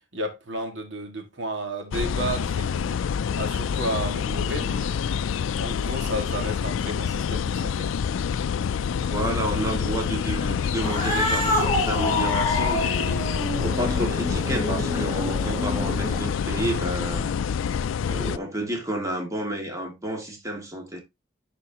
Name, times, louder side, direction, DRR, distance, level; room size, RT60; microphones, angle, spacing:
voice 1, 0.1-3.0 3.4-5.2 5.6-7.9, right 1 dB, 70° right, 1.9 m, -32 dB
sound 1, 1.9-18.4, left 7 dB, 85° left, 0.4 m, -27 dB
voice 2, 8.9-13.2 13.6-17.3 18.1-21.0, right 1 dB, 15° right, 2.1 m, -30 dB
Cat, 10.7-16.4, left 1 dB, 15° left, 5.6 m, -27 dB
10.5 x 4.5 x 2.8 m
head